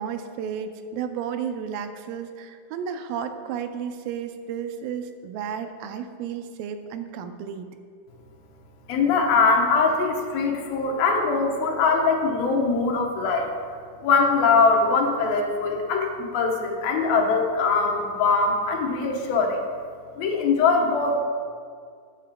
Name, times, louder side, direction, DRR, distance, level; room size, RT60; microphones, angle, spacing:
voice 1, 0.0-7.7, right 7 dB, 85° right, 8 dB, 2.4 m, -33 dB
voice 2, 8.9-13.5 14.0-19.6 20.2-21.2, left 4 dB, 85° left, 1 dB, 2.8 m, -22 dB
15.0 x 9.2 x 2.2 m, 2.2 s
omnidirectional pair, 4.0 m